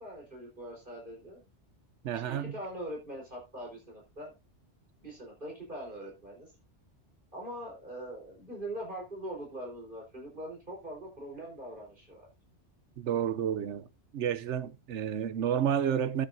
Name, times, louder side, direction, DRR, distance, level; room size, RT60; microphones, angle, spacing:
voice 1, 0.0-1.4 2.1-4.3 5.0-6.5 7.3-12.3, right 1 dB, 45° right, 4.7 m, -42 dB
voice 2, 2.0-2.5 13.0-13.9 14.1-16.3, right 9 dB, 80° right, 1.1 m, -30 dB
13.5 x 9.1 x 2.7 m
omnidirectional pair, 1.2 m